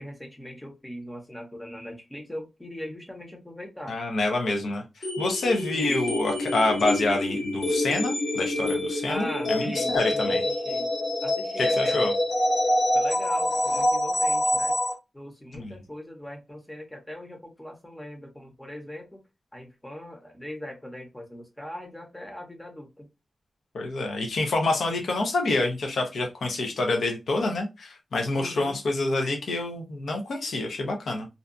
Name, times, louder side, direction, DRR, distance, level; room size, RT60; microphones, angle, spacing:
voice 1, 0.0-4.0 5.7-6.0 9.0-10.9 11.2-12.1 12.9-14.8 15.1-19.2 19.5-23.1 28.4-28.8, left 1 dB, 10° left, 0.6 m, -40 dB
voice 2, 3.9-10.4 11.6-12.1 15.5-15.8 23.7-31.3, left 2 dB, 80° left, 0.6 m, -27 dB
sound 1, 5.0-14.9, left 1 dB, 45° left, 0.8 m, -26 dB
2.6 x 2.2 x 2.4 m
wide cardioid pair, 150°, 0 cm